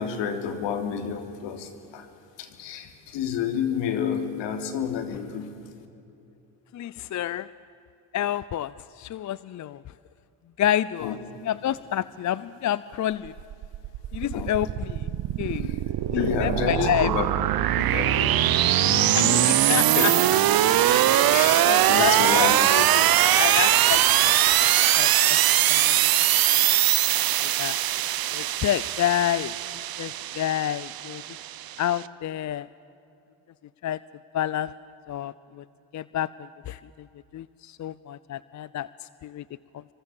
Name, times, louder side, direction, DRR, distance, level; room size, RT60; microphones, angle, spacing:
voice 1, 0.0-2.1 2.4-5.5 11.0-11.2 14.3-14.6 15.6-15.8 16.1-17.3 17.8-20.3 21.3-22.7, left 7 dB, 65° left, 7 dB, 3.4 m, -30 dB
voice 2, 6.7-7.5 8.1-9.8 10.6-11.2 11.5-13.3 14.1-15.1 15.4-15.7 16.1-17.1 19.1-20.1 20.9-21.3 21.6-24.6 25.0-25.4 25.7-26.1 26.7-26.8 27.4-27.8 28.3-29.5 30.0-31.2 31.8-32.7 33.8-34.0 34.3-34.7 35.1-35.6 35.9-36.8 37.3-38.9 39.2-39.4, left 11 dB, 40° left, 18 dB, 0.7 m, -29 dB
sound 1, 13.3-32.0, right 13 dB, 50° right, 1.1 m, -22 dB
28.0 x 25.0 x 7.3 m, 2.7 s
supercardioid pair, 75°, 46 cm